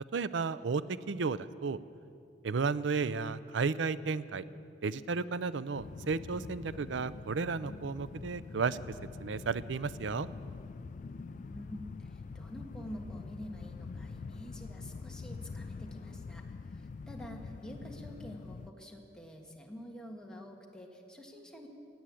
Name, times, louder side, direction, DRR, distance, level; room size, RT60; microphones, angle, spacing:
voice 1, 0.1-1.8 2.4-4.4 4.8-8.8 9.2-10.3, right 4 dB, 85° right, 16 dB, 0.5 m, -33 dB
sound 1, 5.7-18.7, left 4 dB, 45° left, 0.3 m, -45 dB
voice 2, 11.1-21.7, equal, 5° left, 0 dB, 1.5 m, -48 dB
17.0 x 8.9 x 8.5 m, 2.5 s
head